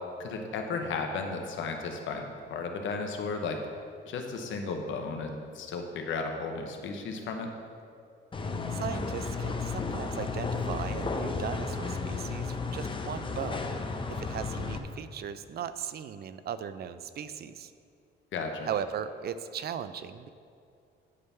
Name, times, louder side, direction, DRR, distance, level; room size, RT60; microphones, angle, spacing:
voice 1, 0.2-3.6 4.1-7.5 18.3-18.7, left 4 dB, 75° left, 4 dB, 0.9 m, -34 dB
sound 1, 8.3-14.8, left 4 dB, 25° left, 0.6 m, -33 dB
voice 2, 8.7-17.7 18.7-20.3, right 8 dB, 55° right, 12 dB, 0.4 m, -38 dB
9.7 x 3.5 x 5.6 m, 2.4 s
cardioid pair, 90°, 20 cm